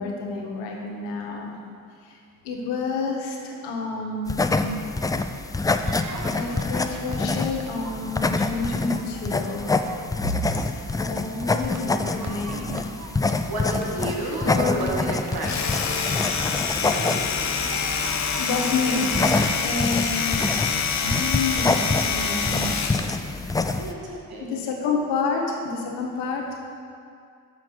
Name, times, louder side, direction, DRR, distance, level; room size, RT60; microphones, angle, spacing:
voice 1, 0.0-1.6 2.0-2.2 2.4-4.8 6.3-9.8 10.2-10.3 10.7-12.8 14.2-14.8 18.4-19.1 19.5-20.5 21.0-22.9 23.2-23.4 23.7-23.9 24.4-26.4, left 4 dB, 85° left, 1 dB, 1.1 m, -29 dB
sound 1, 4.3-23.9, left 3 dB, 10° left, 0.3 m, -27 dB
sound 2, 5.8-19.8, right 3 dB, 45° right, 0.9 m, -42 dB
voice 2, 13.5-16.0 16.8-17.4 23.8-24.5, right 1 dB, 60° right, -3 dB, 2.0 m, -31 dB
Domestic sounds home sounds, 15.3-23.2, left 6 dB, 40° left, 0.8 m, -26 dB
5.9 x 5.8 x 6.2 m, 2.3 s
hypercardioid pair, 45°, 41 cm